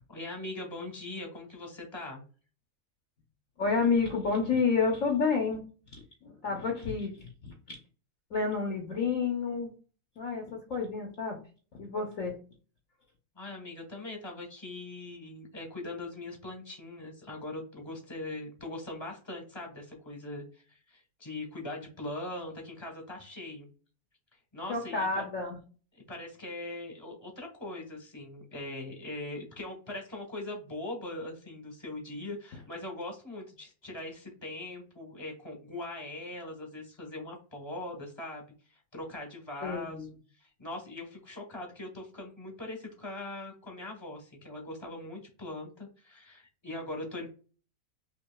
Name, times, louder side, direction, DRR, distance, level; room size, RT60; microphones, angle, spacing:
voice 1, 0.1-2.2 13.3-23.7 24.5-25.2 25.9-38.5 38.9-40.1 40.4-47.3, left 2 dB, 20° left, 1 dB, 1.0 m, -41 dB
voice 2, 3.6-5.7 6.2-7.8 8.3-9.7 10.2-11.4 11.8-12.4 24.7-25.6 39.6-40.1, left 4 dB, 60° left, 1 dB, 1.0 m, -30 dB
5.5 x 2.7 x 2.3 m, 0.38 s
omnidirectional pair, 1.8 m